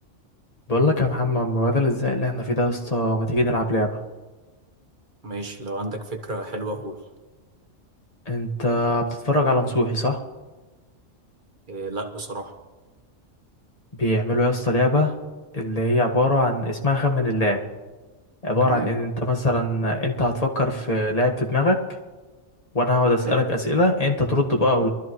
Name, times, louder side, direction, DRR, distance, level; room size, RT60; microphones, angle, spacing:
voice 1, 0.7-4.0 8.3-10.2 14.0-15.1 15.5-17.6 18.4-21.9 22.7-24.9, left 1 dB, 30° left, 1 dB, 1.6 m, -22 dB
voice 2, 5.2-7.0 11.7-12.5 18.6-19.0 23.2-23.4, right 2 dB, 40° right, 4 dB, 1.4 m, -32 dB
23.0 x 13.5 x 3.1 m, 1.3 s
omnidirectional pair, 1.3 m